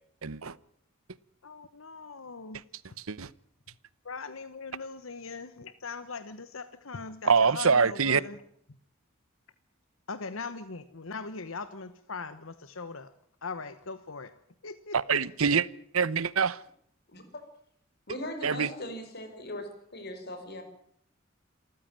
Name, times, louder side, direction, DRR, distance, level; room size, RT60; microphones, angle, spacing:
voice 1, 0.2-0.6 3.0-3.3 7.2-8.2 14.9-15.7 15.9-16.6 18.4-18.7, right 5 dB, 90° right, 1.0 m, -25 dB
voice 2, 1.4-2.6 4.0-8.4 10.1-13.1 13.4-14.3 14.6-15.2, left 4 dB, 70° left, 1.2 m, -40 dB
voice 3, 17.1-17.4 18.1-20.6, left 1 dB, 50° left, 5.6 m, -39 dB
27.5 x 14.5 x 8.9 m
head